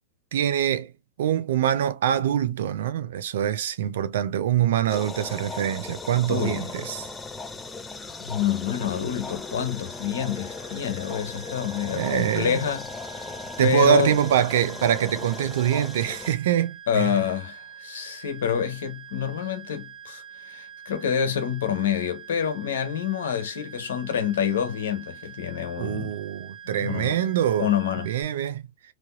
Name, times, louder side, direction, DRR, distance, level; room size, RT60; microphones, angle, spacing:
voice 1, 0.3-0.9 1.2-7.1 11.9-12.6 13.6-17.2 25.8-27.7 28.0-28.7, right 10 dB, 70° right, 0.5 m, -24 dB
sound 1, 4.9-16.4, left 3 dB, 10° left, 0.5 m, -37 dB
voice 2, 6.3-6.7 8.2-12.9 13.6-14.2 16.9-26.2 26.8-27.2 27.6-28.1, left 9 dB, 80° left, 1.1 m, -27 dB
sound 2, 9.2-28.2, right 9 dB, 25° right, 1.6 m, -45 dB
3.2 x 2.8 x 2.5 m
hypercardioid pair, 115°, 0 cm